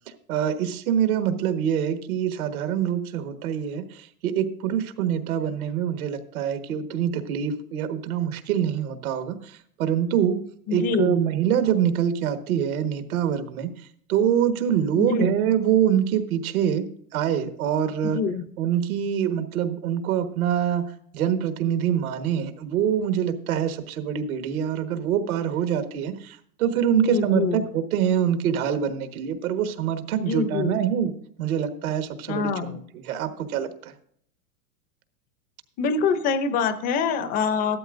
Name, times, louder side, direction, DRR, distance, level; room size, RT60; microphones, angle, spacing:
voice 1, 0.3-10.4 10.7-18.2 18.6-31.1 31.4-33.9, right 9 dB, 75° right, 8 dB, 1.5 m, -25 dB
voice 2, 10.7-11.2 15.0-15.3 18.0-18.4 26.9-27.7 30.2-30.8 32.3-32.8 35.8-37.8, left 5 dB, 20° left, 12 dB, 0.5 m, -25 dB
14.0 x 12.5 x 2.5 m, 0.65 s
supercardioid pair, 150°, 44 cm